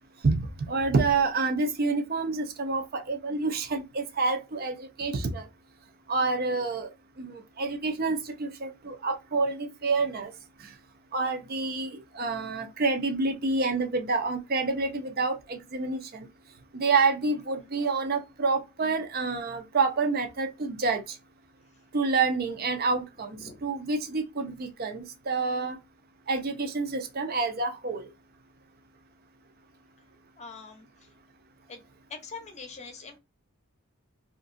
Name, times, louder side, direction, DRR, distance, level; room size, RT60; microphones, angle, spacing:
voice 1, 0.2-5.5 6.1-6.9 7.2-10.3 11.1-16.3 16.7-21.2 21.9-25.8 26.3-28.1, right 3 dB, 45° right, 0.6 m, -28 dB
voice 2, 30.4-30.9 31.7-31.8 32.1-33.2, left 4 dB, 30° left, 0.7 m, -43 dB
2.9 x 2.5 x 2.5 m
head